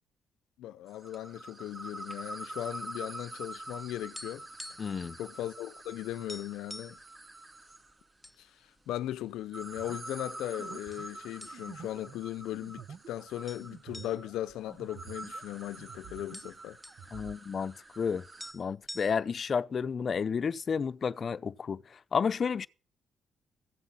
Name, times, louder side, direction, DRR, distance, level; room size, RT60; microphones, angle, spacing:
voice 1, 0.6-4.5 5.2-7.0 8.4-16.8, left 13 dB, 85° left, 0.6 m, -38 dB
sound 1, 0.9-8.0 9.4-18.5, right 2 dB, 25° right, 3.0 m, -46 dB
sound 2, 4.1-5.0 5.3-5.5 5.8-5.9 6.3-7.0 7.7-8.4 8.8-8.9 9.6-10.2 10.9-11.1 11.4-11.9 12.3-12.4 13.5-15.5 15.8-15.9 16.1-17.0 18.1-18.2 18.4-19.5, left 1 dB, 5° left, 0.6 m, -47 dB
voice 2, 4.8-5.2 17.1-18.2 18.5-22.7, left 6 dB, 45° left, 0.6 m, -31 dB
sound 3, 9.7-15.5 15.8-17.4, right 7 dB, 65° right, 0.9 m, -50 dB
15.0 x 7.5 x 7.2 m
cardioid pair, 90°, 0 cm